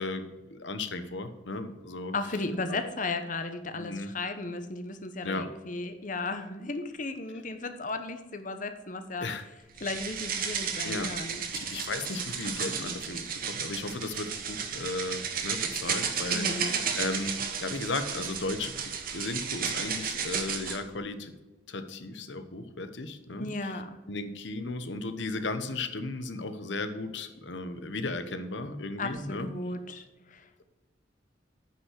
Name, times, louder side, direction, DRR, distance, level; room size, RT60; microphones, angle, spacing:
voice 1, 0.0-2.1 2.7-2.8 3.7-4.1 5.2-5.5 9.2-9.4 10.8-11.1 11.5-21.3 21.7-23.7 24.1-29.5, left 2 dB, 70° left, 9 dB, 1.1 m, -35 dB
voice 2, 2.1-9.3 9.8-11.4 16.3-16.8 23.4-24.0 29.0-30.6, left 3 dB, 45° left, 8 dB, 1.0 m, -35 dB
sound 1, 9.8-20.8, right 6 dB, 50° right, 1.2 m, -33 dB
9.2 x 5.7 x 6.4 m, 1.2 s
head